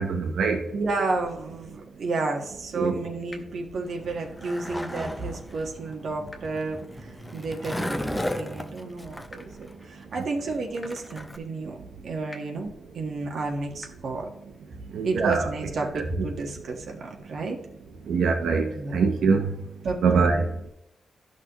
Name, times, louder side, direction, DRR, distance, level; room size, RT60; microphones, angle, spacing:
voice 1, 0.0-0.6 2.7-3.0 14.9-15.5 15.9-16.0 18.1-19.5 20.0-20.5, right 5 dB, 85° right, 3 dB, 0.8 m, -23 dB
voice 2, 0.7-11.8 12.0-14.3 14.7-14.8 15.0-17.6 18.7-19.0 19.8-20.5, right 3 dB, 55° right, 2 dB, 1.4 m, -31 dB
sound 1, 3.3-3.4 4.8-4.9 6.3-6.4 7.8-7.9 9.3-9.4 10.8-10.9 12.3-12.4 13.8-13.9 15.3-15.4, left 2 dB, 20° left, 0.9 m, -43 dB
Skateboard, 3.9-11.4, left 1 dB, 5° left, 0.5 m, -35 dB
12.5 x 6.0 x 3.0 m, 0.83 s
wide cardioid pair, 180°, 0 cm